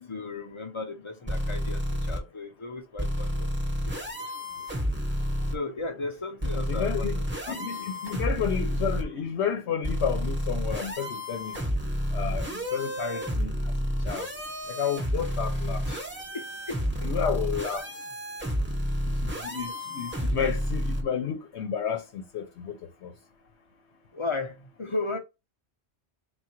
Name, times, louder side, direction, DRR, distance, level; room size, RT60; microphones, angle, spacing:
voice 1, 0.0-3.5 3.8-4.3 4.6-4.8 5.5-7.9 15.9-16.0 16.3-17.1 24.1-25.2, left 3 dB, 30° left, 0.7 m, -36 dB
sound 1, 1.3-2.2 3.0-5.5 6.4-9.0 9.8-21.0, equal, 10° right, 0.7 m, -30 dB
voice 2, 6.7-7.2 7.5-11.6 12.1-13.5 14.1-14.3 14.8-15.8 17.0-17.8 19.2-22.0 22.3-22.7 23.0-23.1, left 7 dB, 80° left, 1.0 m, -31 dB
3.7 x 2.4 x 4.4 m
omnidirectional pair, 1.1 m